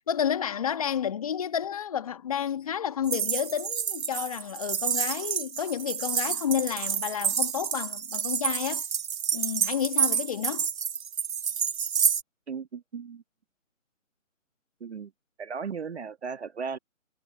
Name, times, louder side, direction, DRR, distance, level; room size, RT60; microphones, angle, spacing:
voice 1, 0.0-8.8 9.3-10.7, left 8 dB, 25° left, 1.6 m, -30 dB
sound 1, 3.1-12.2, right 7 dB, 90° right, 0.8 m, -29 dB
voice 2, 12.5-13.2 14.8-15.1 15.4-16.8, right 6 dB, 55° right, 2.1 m, -36 dB
figure-of-eight pair, 165°, 40 cm